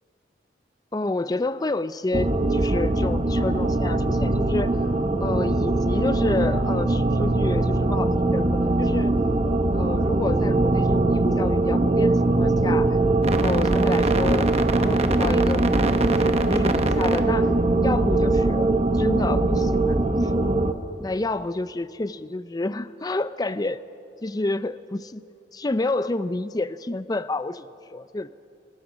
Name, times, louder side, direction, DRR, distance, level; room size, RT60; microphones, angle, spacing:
voice 1, 0.9-4.9 5.2-9.2 9.7-15.6 16.1-17.5 17.8-20.6 21.0-23.8 24.2-25.2 25.5-28.4, left 2 dB, 20° left, 14 dB, 0.4 m, -29 dB
sound 1, 2.1-20.7, right 2 dB, 35° right, 1.0 m, -21 dB
26.0 x 19.0 x 6.1 m, 2.5 s
head